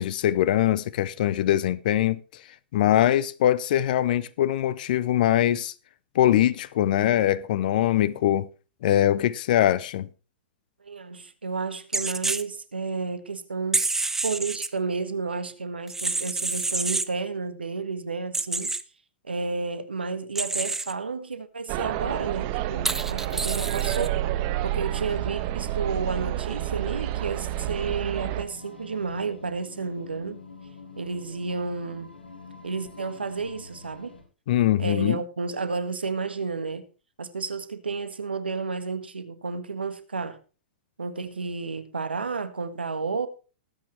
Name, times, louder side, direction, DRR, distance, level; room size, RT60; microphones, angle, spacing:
voice 1, 0.0-2.4 2.7-5.7 6.1-8.5 8.8-10.1 34.5-35.2, left 12 dB, 60° left, 0.7 m, -22 dB
voice 2, 10.8-13.8 14.2-18.7 19.2-24.2 24.6-30.4 31.0-32.1 32.6-34.1 34.8-36.9 37.2-40.4 41.0-43.3, right 4 dB, 85° right, 1.6 m, -31 dB
sound 1, 11.9-12.4 13.7-14.7 15.9-17.1 18.3-18.8 20.3-20.9 22.8-24.1, right 3 dB, 5° right, 0.8 m, -28 dB
sound 2, 21.7-28.4, right 14 dB, 45° right, 1.5 m, -29 dB
sound 3, 24.3-34.2, left 3 dB, 80° left, 5.2 m, -46 dB
20.0 x 8.7 x 3.2 m
hypercardioid pair, 110°, 5 cm